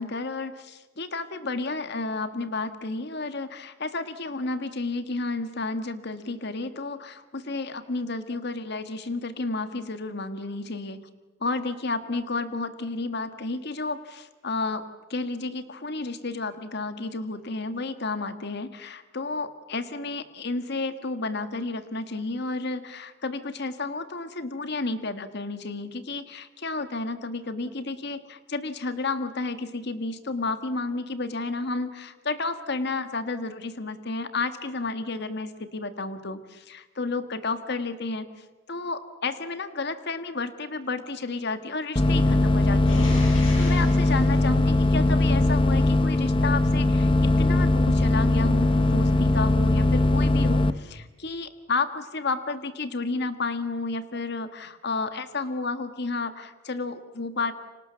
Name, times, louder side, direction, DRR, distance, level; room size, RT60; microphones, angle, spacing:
voice 1, 0.0-11.0 11.4-57.5, left 3 dB, 60° left, 10 dB, 1.7 m, -31 dB
sound 1, 42.0-50.7, left 2 dB, 25° left, 1.0 m, -20 dB
sound 2, 42.8-45.6 48.0-49.4, left 2 dB, 85° left, 8.0 m, -40 dB
29.5 x 25.5 x 7.1 m, 1.2 s
head